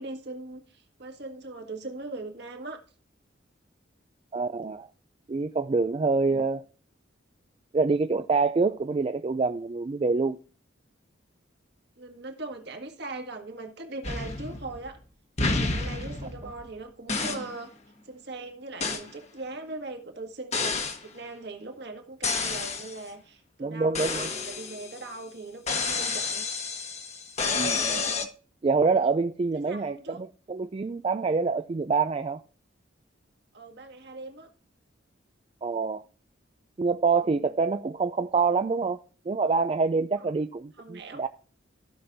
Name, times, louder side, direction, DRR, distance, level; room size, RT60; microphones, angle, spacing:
voice 1, 0.0-2.8 6.1-6.5 12.0-15.0 15.4-17.7 18.1-20.8 21.1-26.5 29.7-30.2 33.5-34.5 37.2-37.5 40.2-40.3 40.8-41.2, right 2 dB, 55° right, 1.8 m, -40 dB
voice 2, 4.3-4.9 5.3-6.7 7.7-10.4 23.6-24.3 27.5-28.0 28.6-32.4 35.6-36.0 36.8-39.0 39.3-41.3, right 4 dB, 30° right, 0.3 m, -26 dB
sound 1, 14.0-15.0 15.4-16.7 17.1-17.5 18.8-19.1 20.5-21.0 22.2-23.0 23.9-25.1 25.7-28.3, left 4 dB, 35° left, 1.2 m, -30 dB
15.5 x 6.0 x 2.7 m
head